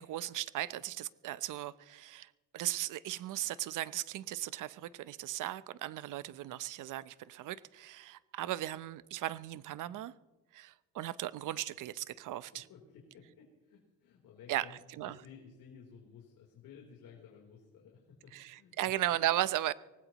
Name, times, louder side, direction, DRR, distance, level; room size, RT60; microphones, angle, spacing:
voice 1, 0.0-10.1 10.5-12.7 14.5-15.3 18.3-19.7, right 14 dB, 60° right, 0.7 m, -37 dB
voice 2, 12.5-18.7, left 6 dB, 75° left, 3.7 m, -55 dB
24.5 x 19.0 x 3.0 m
cardioid pair, 135°, 35 cm